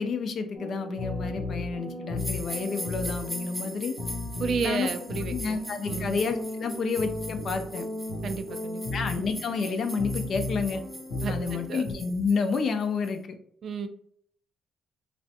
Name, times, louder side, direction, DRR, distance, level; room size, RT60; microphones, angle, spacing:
voice 1, 0.0-4.0 4.6-4.9 5.3-7.9 8.9-10.8 11.3-13.4, left 4 dB, 55° left, 7 dB, 0.5 m, -30 dB
sound 1, 0.5-11.9, left 2 dB, 85° left, 0.9 m, -35 dB
sound 2, 2.2-13.1, equal, ahead, 0.5 m, -41 dB
voice 2, 4.4-5.6 5.9-6.2 8.2-8.9 11.2-11.8 13.6-13.9, right 5 dB, 60° right, 8 dB, 0.4 m, -32 dB
3.2 x 2.5 x 2.6 m, 0.65 s
cardioid pair, 90°, 0 cm